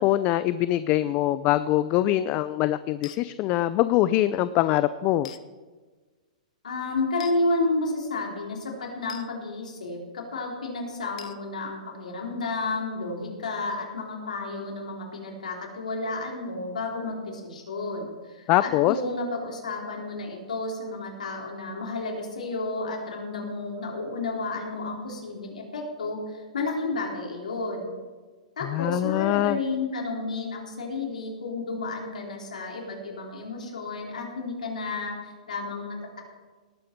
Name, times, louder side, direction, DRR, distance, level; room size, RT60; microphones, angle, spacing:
voice 1, 0.0-5.3 18.5-19.0 28.6-29.6, left 14 dB, 35° left, 15 dB, 0.4 m, -23 dB
sound 1, 3.0-3.2 5.2-5.4 7.2-7.4 9.1-9.3 11.2-11.4, left 10 dB, 65° left, 0.9 m, -42 dB
voice 2, 6.6-27.9 28.6-36.2, left 3 dB, 90° left, 0 dB, 3.9 m, -31 dB
18.5 x 8.6 x 4.6 m, 1.4 s
hypercardioid pair, 140°, 4 cm